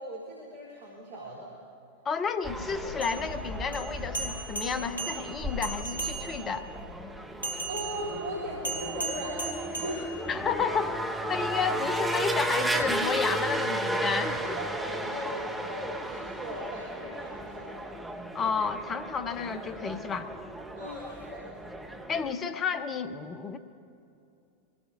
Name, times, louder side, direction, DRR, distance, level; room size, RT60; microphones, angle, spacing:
voice 1, 0.0-1.6 7.6-10.3 14.1-17.9 20.7-21.5, right 1 dB, 55° right, -7 dB, 3.3 m, -38 dB
voice 2, 2.0-6.7 10.3-14.5 18.3-20.3 22.1-23.6, left 6 dB, 25° left, 10 dB, 0.7 m, -31 dB
sound 1, 2.4-22.3, right 1 dB, 5° right, 0.9 m, -34 dB
sound 2, 2.9-6.6 7.4-10.6, right 3 dB, 90° right, 1.5 m, -37 dB
24.0 x 18.0 x 2.6 m, 2.6 s
figure-of-eight pair, 90°, 0 cm